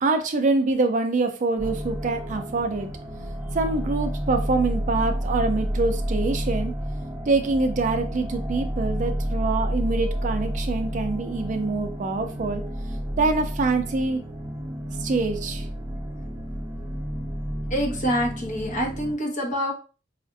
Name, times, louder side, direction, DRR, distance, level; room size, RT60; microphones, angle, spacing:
voice 1, 0.0-2.9 3.5-6.7 7.3-12.6 13.2-14.2 15.0-15.7, right 3 dB, 40° right, 7 dB, 0.4 m, -25 dB
sound 1, 1.6-19.1, equal, 20° right, 0.9 m, -30 dB
voice 2, 17.7-19.7, equal, 40° left, 1 dB, 1.0 m, -26 dB
4.9 x 2.4 x 2.5 m, 0.34 s
head